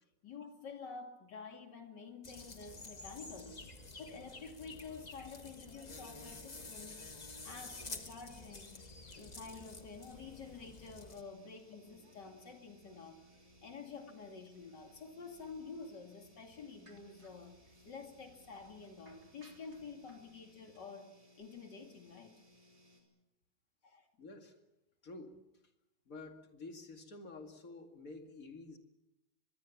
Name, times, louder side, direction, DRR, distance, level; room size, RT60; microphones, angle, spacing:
voice 1, 0.2-3.6 4.0-7.1 7.4-8.9 9.2-13.2 13.6-17.5 17.8-22.3 23.8-24.1, left 4 dB, 60° left, 4 dB, 3.1 m, -49 dB
sound 1, 2.2-11.2, left 3 dB, 25° left, 1.3 m, -50 dB
sound 2, 2.7-20.8, right 2 dB, 50° right, 4.4 m, -68 dB
sound 3, 8.3-23.0, left 1 dB, 15° right, 4.7 m, -65 dB
voice 2, 24.2-24.5 25.0-25.4 26.1-28.8, left 3 dB, 45° left, 5 dB, 2.6 m, -50 dB
24.0 x 21.5 x 7.2 m, 0.94 s
omnidirectional pair, 2.1 m